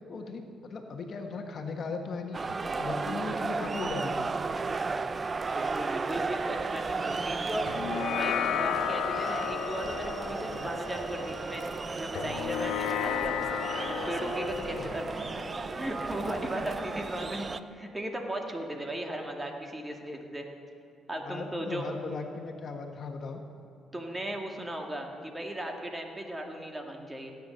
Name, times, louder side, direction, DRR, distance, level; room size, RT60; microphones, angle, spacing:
voice 1, 0.1-2.4 2.8-4.3 14.7-14.9 21.2-23.4, left 4 dB, 55° left, 4 dB, 1.3 m, -37 dB
sound 1, 2.3-17.6, right 4 dB, 35° right, 0.5 m, -34 dB
voice 2, 5.5-7.7 8.2-13.4 13.7-20.5 21.1-21.9 23.9-27.3, right 1 dB, 15° right, 2 dB, 1.9 m, -37 dB
sound 2, 7.7-16.4, left 10 dB, 85° left, 0.5 m, -34 dB
16.0 x 9.3 x 6.6 m, 2.7 s
cardioid pair, 90°, 0 cm